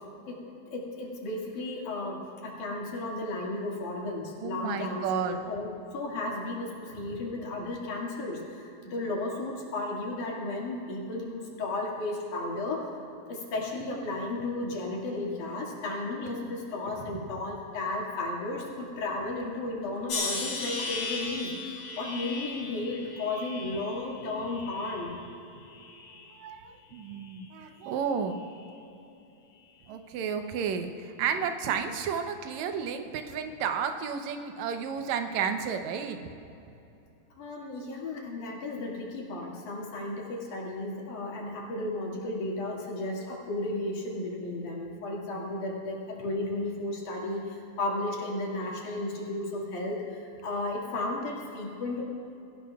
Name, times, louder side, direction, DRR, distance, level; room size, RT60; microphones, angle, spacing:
voice 1, 0.7-12.9 13.3-25.1 37.4-52.0, left 2 dB, 80° left, -3 dB, 3.6 m, -34 dB
voice 2, 4.4-5.4 17.1-17.3 26.3-28.5 29.9-36.3, right 7 dB, 75° right, 6 dB, 2.1 m, -32 dB
sound 1, 20.1-25.2 25.7-26.4 27.1-27.4, left 3 dB, 55° left, 3.0 m, -37 dB
23.5 x 15.0 x 2.4 m, 2.8 s
omnidirectional pair, 3.5 m